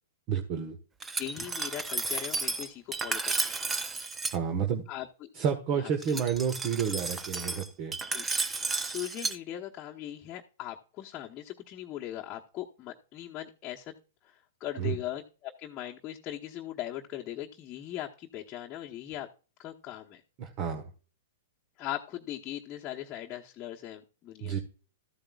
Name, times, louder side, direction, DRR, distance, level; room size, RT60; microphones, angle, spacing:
voice 1, 0.3-0.8 4.3-4.8 5.3-7.9 14.8-14.9 20.4-20.9 24.4-24.6, right 7 dB, 40° right, 6 dB, 1.4 m, -30 dB
Glass, 1.0-4.4 6.0-9.4, right 3 dB, 15° right, 0.8 m, -33 dB
voice 2, 1.2-3.6 4.9-5.3 5.8-6.2 8.1-8.3 8.9-13.9 14.2-19.3 19.6-20.2 21.8-24.6, left 13 dB, 30° left, -2 dB, 1.1 m, -39 dB
14.0 x 8.7 x 2.4 m, 0.35 s
hypercardioid pair, 115°, 0 cm